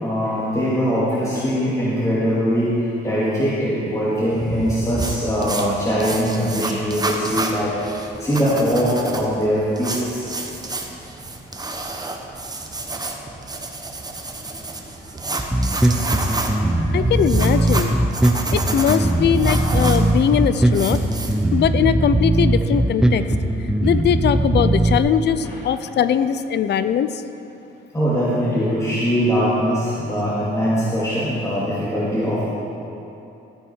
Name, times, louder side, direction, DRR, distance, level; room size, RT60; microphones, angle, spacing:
voice 1, 0.0-2.8 3.0-7.8 8.2-10.2 15.7-16.0 16.4-16.9 25.4-25.6 27.9-32.5, equal, 15° left, -8 dB, 2.4 m, -22 dB
sound 1, 4.3-21.4, right 2 dB, 20° right, 1.1 m, -30 dB
Bass guitar, 15.4-25.0, right 1 dB, 5° right, 0.9 m, -19 dB
voice 2, 16.9-18.0 18.5-21.0 21.5-23.2 23.8-27.1, left 8 dB, 60° left, 12 dB, 0.6 m, -20 dB
13.5 x 9.0 x 4.5 m, 2.8 s
cardioid pair, 90°, 20 cm